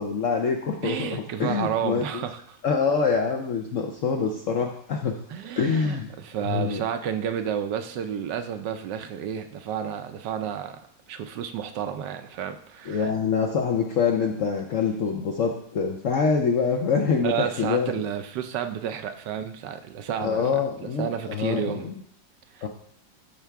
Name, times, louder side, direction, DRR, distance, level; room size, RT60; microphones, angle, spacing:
voice 1, 0.0-2.2 2.6-5.2 5.5-6.1 6.5-6.8 12.9-17.9 20.2-21.9 22.6-22.7, left 5 dB, 65° left, 2 dB, 0.8 m, -25 dB
voice 2, 0.8-2.6 5.3-13.1 17.2-20.5 21.0-21.9 22.5-22.7, right 9 dB, 75° right, 8 dB, 1.2 m, -31 dB
12.0 x 4.5 x 3.4 m, 0.65 s
omnidirectional pair, 2.0 m